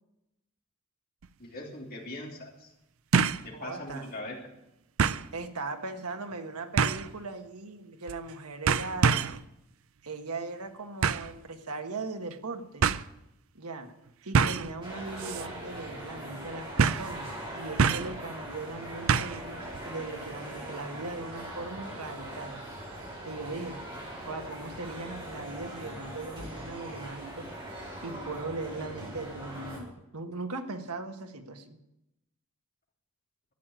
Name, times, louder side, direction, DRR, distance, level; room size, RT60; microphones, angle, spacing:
sound 1, 1.2-1.3 3.1-3.5 3.9-4.0 5.0-5.3 6.8-7.1 8.1-8.3 8.7-9.4 11.0-11.3 12.3-12.4 12.8-13.0 14.3-14.7 15.2-15.5 15.7-15.8 16.8-17.1 17.8-18.2 19.1-19.4 19.7-19.8, right 6 dB, 65° right, 0.5 m, -25 dB
voice 1, 1.4-2.7 3.4-4.4, left 1 dB, 40° left, -1 dB, 3.2 m, -40 dB
voice 2, 3.5-4.1 5.3-9.3 10.0-12.9 13.5-13.9 14.2-22.6 23.3-23.8 24.3-27.5 28.0-31.8, right 3 dB, 85° right, 6 dB, 1.5 m, -39 dB
sound 2, 14.8-29.8, right 1 dB, 25° right, 4.5 m, -41 dB
13.0 x 9.2 x 9.0 m, 0.88 s
head